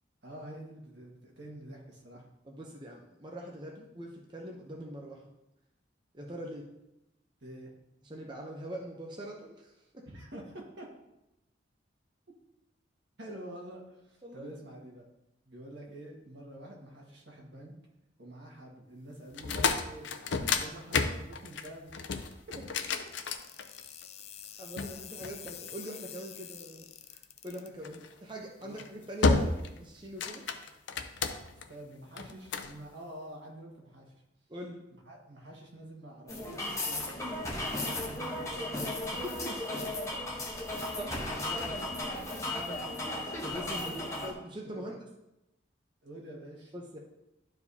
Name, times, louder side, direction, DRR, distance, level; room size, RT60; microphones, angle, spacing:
voice 1, 0.2-2.3 7.4-7.7 10.0-10.9 13.2-15.1 15.4-17.7 18.2-20.1 20.5-22.4 24.5-24.6 28.6-28.7 31.7-34.1 35.0-37.5 37.8-39.2 39.4-39.5 43.8-44.0 44.6-44.9 46.0-46.7, right 1 dB, 75° right, -1 dB, 1.7 m, -47 dB
voice 2, 2.4-5.2 6.1-6.7 8.0-10.1 13.3-13.4 14.2-14.6 24.6-30.4 34.5-34.8 39.1-39.5 41.0-45.0 46.7-47.0, equal, 25° right, -1 dB, 0.7 m, -43 dB
sound 1, 19.3-24.0 24.8-26.1 27.8-28.1 28.6-28.9 29.2-29.8 30.1-31.6 32.2-32.7, left 4 dB, 85° left, 0.6 m, -31 dB
sound 2, 23.1-27.7, left 10 dB, 35° left, 0.4 m, -47 dB
sound 3, 36.3-44.3, left 1 dB, 15° left, 1.0 m, -35 dB
11.5 x 4.7 x 2.8 m, 0.91 s
head